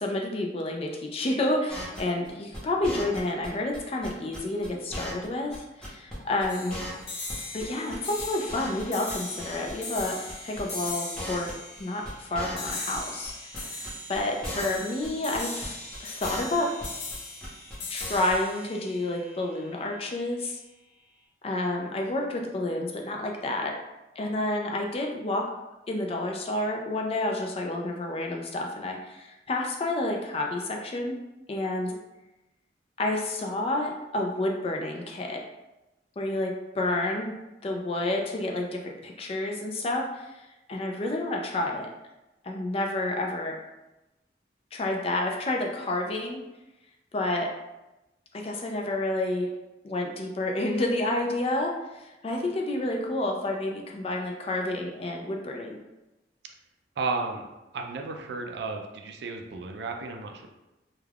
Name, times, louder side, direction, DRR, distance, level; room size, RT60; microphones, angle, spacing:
voice 1, 0.0-6.8 7.5-11.5 11.8-13.3 13.6-16.7 17.9-20.6 21.4-23.7 24.2-25.5 25.9-31.2 31.5-32.0 33.0-35.4 36.2-37.3 37.6-41.9 42.4-43.6 44.7-46.4 47.1-47.5 48.3-49.5 49.8-55.8, left 2 dB, 30° left, 1 dB, 0.3 m, -30 dB
sound 1, 1.7-3.5 3.7-5.3 5.5-5.6 5.8-6.1 6.4-6.5 6.7-7.6 7.9-8.8 9.1-9.7 10.0-10.1 10.3-10.6 10.9-11.0 11.2-11.8 12.0-13.3 13.5-14.8 15.0-15.1 15.3-15.7 15.9-17.2 17.4-17.7 18.0-18.3, left 1 dB, 5° left, 0.7 m, -37 dB
sound 2, 6.5-19.9, left 2 dB, 65° left, 0.7 m, -39 dB
voice 2, 57.0-57.4 57.7-60.5, right 3 dB, 60° right, 3 dB, 0.3 m, -33 dB
2.3 x 2.3 x 3.3 m, 0.99 s
head